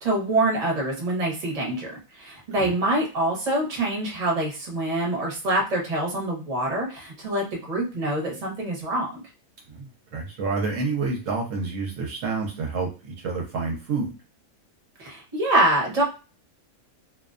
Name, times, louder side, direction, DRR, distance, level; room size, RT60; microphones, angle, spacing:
voice 1, 0.0-9.1 15.0-16.0, right 1 dB, 35° right, -1 dB, 0.7 m, -25 dB
voice 2, 9.7-14.1, right 4 dB, 70° right, 0 dB, 0.9 m, -29 dB
2.4 x 2.1 x 2.3 m, 0.32 s
omnidirectional pair, 1.5 m